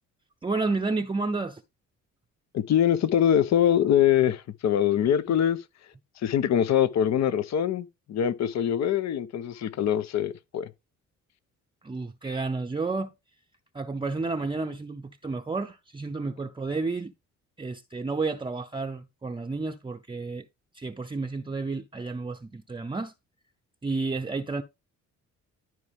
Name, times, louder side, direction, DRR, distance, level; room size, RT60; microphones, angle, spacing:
voice 1, 0.4-1.6 5.3-5.4 11.8-13.1 13.7-17.1 17.6-20.4 20.7-23.1 23.8-24.6, right 3 dB, 15° right, 0.6 m, -31 dB
voice 2, 2.5-5.6 6.2-10.7, left 10 dB, 60° left, 0.8 m, -23 dB
12.5 x 4.5 x 3.5 m
cardioid pair, 90°, 30 cm